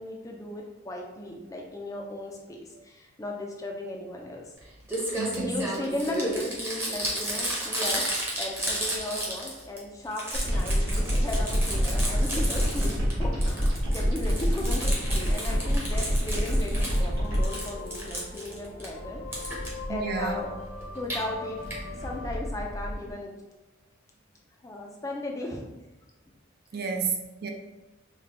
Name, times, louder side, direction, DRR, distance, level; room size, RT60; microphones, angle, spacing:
voice 1, 0.0-4.4 5.4-8.1 8.4-13.6 13.9-20.6 20.9-21.6 22.0-23.3 24.6-25.7 26.7-27.0, left 1 dB, 15° left, 0 dB, 0.4 m, -36 dB
Crumpling crinkling, 4.6-4.7 4.9-9.8 10.1-13.1 13.4-17.0 17.3-18.9 19.3-19.7 20.8-21.2 21.7-21.8 22.0-22.1 22.3-22.4, right 1 dB, 10° right, 0.7 m, -33 dB
voice 2, 5.2-5.7 19.9-20.4 26.7-27.5, right 4 dB, 45° right, 3 dB, 0.4 m, -31 dB
sound 1, 10.3-17.5, equal, 75° right, 1.2 m, -26 dB
sound 2, 10.9-23.1, left 1 dB, 80° left, 1.2 m, -40 dB
5.0 x 2.2 x 2.9 m, 1.0 s
head